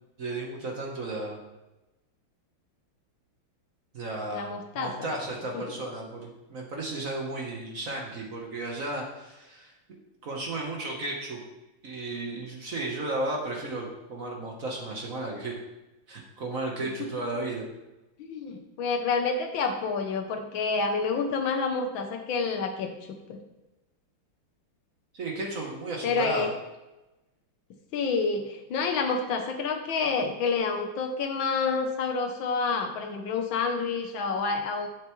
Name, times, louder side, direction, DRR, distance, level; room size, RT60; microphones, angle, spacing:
voice 1, 0.2-1.4 3.9-9.7 10.2-11.4 11.8-15.5 16.1-17.7 25.1-26.5, right 2 dB, 45° right, 0 dB, 1.3 m, -34 dB
voice 2, 4.3-5.1 5.5-5.7 18.2-23.4 26.0-26.5 27.9-34.9, left 4 dB, 70° left, 6 dB, 1.5 m, -28 dB
10.5 x 6.8 x 3.1 m, 1.0 s
omnidirectional pair, 2.3 m